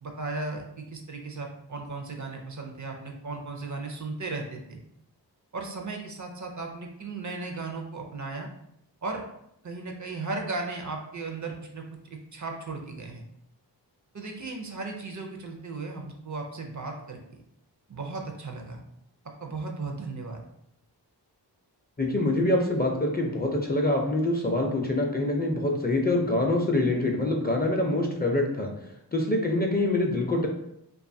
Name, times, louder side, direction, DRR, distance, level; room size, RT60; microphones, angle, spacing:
voice 1, 0.0-4.8 5.5-8.5 9.0-9.2 9.6-11.8 12.1-13.2 14.1-17.4 17.9-18.8 19.4-20.4, right 3 dB, 45° right, 2 dB, 0.5 m, -36 dB
voice 2, 22.0-28.7 29.1-30.5, left 2 dB, 25° left, 0 dB, 0.4 m, -25 dB
2.6 x 2.3 x 2.6 m, 0.78 s
cardioid pair, 45°, 42 cm